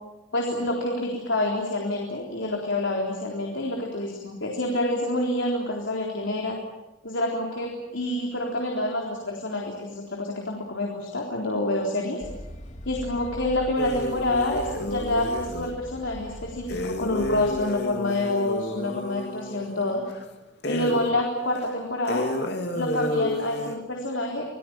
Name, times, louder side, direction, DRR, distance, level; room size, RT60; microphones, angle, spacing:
voice 1, 0.3-6.6 7.0-12.2 12.9-20.0 20.7-22.3 22.7-24.5, left 1 dB, 75° left, 0 dB, 3.9 m, -27 dB
sound 1, 12.2-17.6, equal, 35° left, 2.3 m, -40 dB
sound 2, 13.8-15.8 16.7-20.2 20.6-21.2 21.6-21.7 22.1-23.8, left 1 dB, 55° left, 2.8 m, -31 dB
27.0 x 19.0 x 8.9 m, 1.0 s
head